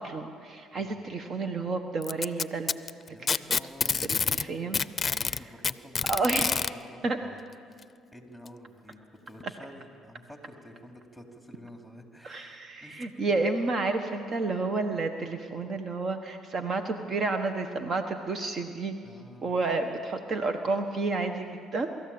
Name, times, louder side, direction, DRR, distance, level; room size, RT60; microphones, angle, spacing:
voice 1, 0.0-2.7 3.3-3.6 3.8-4.8 5.3-5.4 6.1-6.5 7.0-7.2 12.2-19.0 19.4-22.0, right 3 dB, 50° right, 7 dB, 1.3 m, -30 dB
voice 2, 0.7-1.1 3.1-4.7 5.0-6.6 6.9-7.4 7.7-9.0 9.3-13.3 19.0-19.5, equal, 5° right, 3 dB, 3.4 m, -49 dB
Packing tape duct tape, 2.0-4.5 4.7-6.7 7.8-7.9 8.5-8.6 9.4-9.5, left 5 dB, 35° left, 0.6 m, -27 dB
24.5 x 14.0 x 8.8 m, 2.3 s
supercardioid pair, 75°, 0 cm